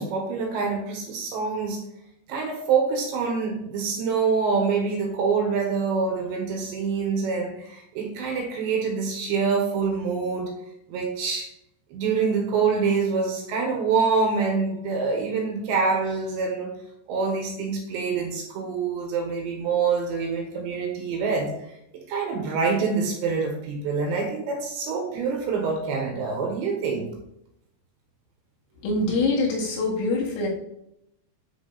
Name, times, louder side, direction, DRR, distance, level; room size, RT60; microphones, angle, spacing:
voice 1, 0.0-1.8 2.3-10.5 10.9-11.5 11.9-16.7 17.1-27.1, right 5 dB, 70° right, 2 dB, 3.1 m, -26 dB
voice 2, 28.8-30.5, left 2 dB, 85° left, -3 dB, 4.7 m, -24 dB
10.5 x 4.7 x 4.0 m, 0.81 s
omnidirectional pair, 5.9 m